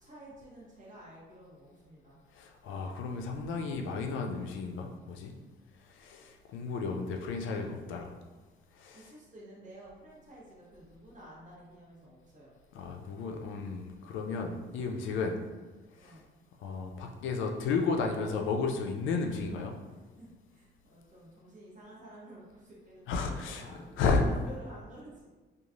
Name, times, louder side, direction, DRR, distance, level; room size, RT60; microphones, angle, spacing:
voice 1, 0.0-2.2 8.9-12.5 16.0-16.3 20.2-23.9 24.2-25.3, right 1 dB, 40° right, -6 dB, 1.1 m, -52 dB
voice 2, 2.3-5.3 5.9-8.1 8.8-9.1 12.7-15.4 16.0-16.2 16.6-19.7 23.1-24.2, left 4 dB, 80° left, 3 dB, 0.4 m, -33 dB
3.0 x 2.4 x 2.4 m, 1.3 s
cardioid pair, 90°, 20 cm